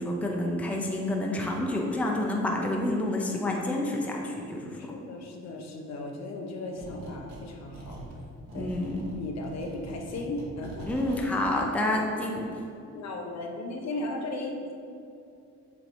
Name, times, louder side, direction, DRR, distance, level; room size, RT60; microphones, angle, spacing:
voice 1, 0.0-4.8 8.6-9.1 10.9-12.5, left 1 dB, 5° left, -1 dB, 0.6 m, -28 dB
voice 2, 4.8-8.0 8.5-8.7 9.2-10.9 11.7-11.9 12.1-12.4 12.9-14.7, left 2 dB, 60° left, 1 dB, 0.9 m, -36 dB
sound 1, 6.8-7.5 7.7-11.3, right 1 dB, 65° right, 1.2 m, -42 dB
7.1 x 3.2 x 4.1 m, 2.5 s
cardioid pair, 125°, 30 cm